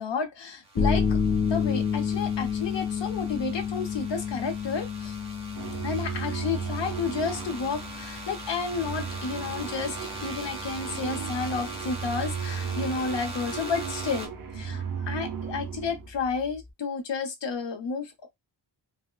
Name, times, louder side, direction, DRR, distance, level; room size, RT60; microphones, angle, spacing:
voice 1, 0.0-5.2 5.8-18.3, left 5 dB, 70° left, 0.8 m, -31 dB
sound 1, 0.6-14.3, right 2 dB, 10° right, 0.9 m, -42 dB
sound 2, 0.8-16.7, left 6 dB, 30° left, 0.5 m, -32 dB
sound 3, 5.6-16.1, right 7 dB, 50° right, 0.6 m, -35 dB
4.1 x 2.1 x 2.3 m
wide cardioid pair, 170°, 45 cm